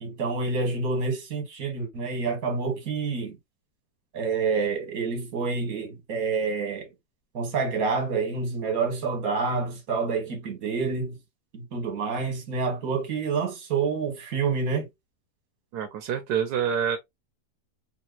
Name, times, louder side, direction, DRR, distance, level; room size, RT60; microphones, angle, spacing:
voice 1, 0.0-3.4 4.1-6.9 7.3-11.2 11.5-14.9, right 4 dB, 65° right, 1.7 m, -28 dB
voice 2, 15.7-17.0, right 8 dB, 85° right, 1.3 m, -27 dB
3.5 x 2.9 x 2.6 m
omnidirectional pair, 1.7 m